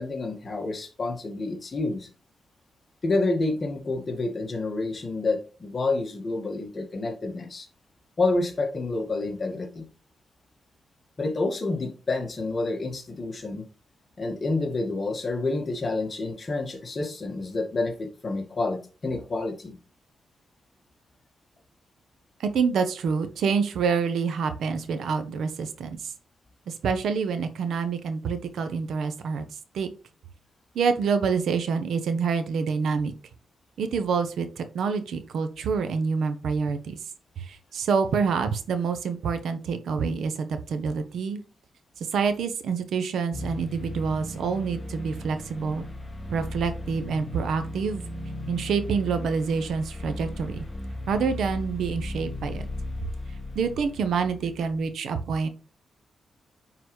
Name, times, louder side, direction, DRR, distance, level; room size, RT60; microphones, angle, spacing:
voice 1, 0.0-2.1 3.0-7.7 8.2-9.9 11.2-13.6 14.2-19.8, left 3 dB, 40° left, 3 dB, 1.7 m, -28 dB
voice 2, 22.4-26.1 26.7-29.4 29.7-29.9 30.7-33.1 33.8-37.0 37.4-41.4 42.0-45.8 46.3-48.0 48.5-50.6 51.1-52.7 53.5-55.5, right 5 dB, 80° right, 9 dB, 0.9 m, -27 dB
sound 1, 43.3-54.9, left 1 dB, 20° left, 2.3 m, -36 dB
9.5 x 4.0 x 3.2 m, 0.36 s
cardioid pair, 95°, 0 cm